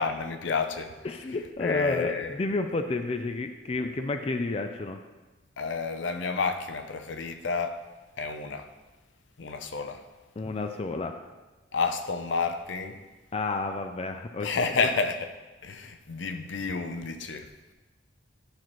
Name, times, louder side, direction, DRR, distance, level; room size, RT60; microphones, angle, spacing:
voice 1, 0.0-0.9 1.6-2.4 5.6-7.8 8.2-8.7 9.4-10.0 11.7-13.0 14.4-15.3 15.6-17.5, left 4 dB, 80° left, 0.6 m, -30 dB
voice 2, 1.0-5.0 10.4-11.2 13.3-14.9, left 3 dB, 30° left, 0.4 m, -31 dB
11.5 x 5.9 x 3.1 m
head